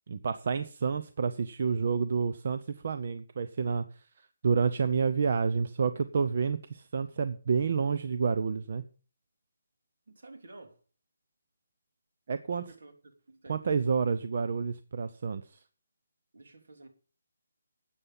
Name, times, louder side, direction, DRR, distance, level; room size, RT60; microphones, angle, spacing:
voice 1, 0.1-8.8 12.3-12.6 13.5-15.6, right 5 dB, 40° right, 0.7 m, -29 dB
voice 2, 10.1-10.8 12.5-12.9 13.3-13.7 16.3-16.9, right 2 dB, 65° right, 3.1 m, -51 dB
12.5 x 8.4 x 5.4 m
hypercardioid pair, 175°, 0 cm